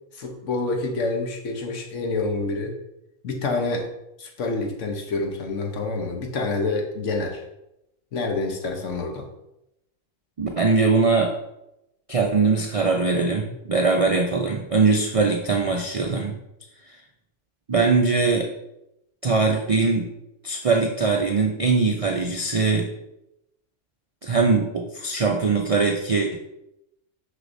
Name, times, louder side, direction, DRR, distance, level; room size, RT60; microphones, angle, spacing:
voice 1, 0.1-2.8 3.2-3.9 4.2-7.4 8.1-9.3, left 3 dB, 70° left, 3 dB, 1.3 m, -27 dB
voice 2, 10.4-11.3 12.1-16.3 17.7-18.5 19.2-20.1 20.4-22.9 24.2-26.4, right 4 dB, 55° right, 1 dB, 0.4 m, -21 dB
6.4 x 5.7 x 2.6 m, 0.85 s
omnidirectional pair, 1.3 m